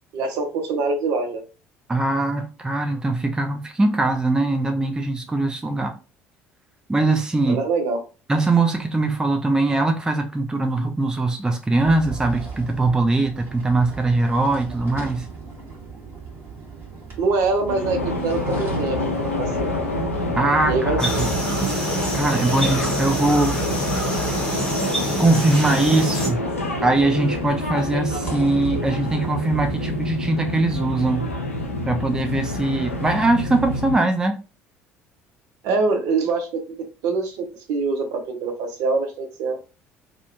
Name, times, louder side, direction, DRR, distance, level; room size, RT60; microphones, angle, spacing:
voice 1, 0.1-1.4 7.5-8.0 17.2-19.8 20.7-21.2 35.6-36.5 37.0-39.6, right 3 dB, 55° right, 0.6 m, -24 dB
voice 2, 1.9-5.9 6.9-7.6 8.3-15.3 20.4-21.3 22.1-23.6 25.2-26.4 26.8-31.3 31.8-34.4, right 2 dB, 10° right, 0.4 m, -21 dB
sound 1, 11.7-29.1, right 4 dB, 35° right, 1.2 m, -39 dB
sound 2, 17.7-34.0, left 1 dB, 85° left, 0.4 m, -27 dB
sound 3, 21.0-26.3, right 1 dB, 10° left, 0.9 m, -26 dB
2.5 x 2.1 x 2.6 m
figure-of-eight pair, 60°, 7 cm